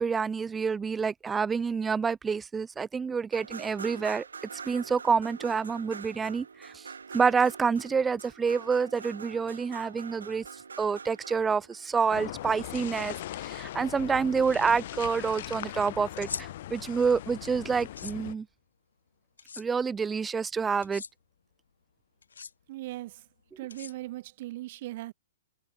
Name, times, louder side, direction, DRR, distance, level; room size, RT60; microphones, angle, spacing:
voice 1, 0.0-4.3 4.7-6.9 7.1-10.4 10.8-18.5 19.6-21.0, right 5 dB, 15° right, 0.3 m, -28 dB
sound 1, 3.3-12.1, right 5 dB, 85° right, 2.0 m, -45 dB
sound 2, 12.1-18.3, left 13 dB, 55° left, 2.1 m, -39 dB
sound 3, 16.1-16.4 17.8-18.1 19.4-19.6 20.8-21.1 22.2-22.5 23.7-24.3, left 6 dB, 80° left, 0.7 m, -40 dB
voice 2, 22.7-23.2 23.6-25.1, right 17 dB, 50° right, 3.0 m, -39 dB
hypercardioid pair, 125°, 0 cm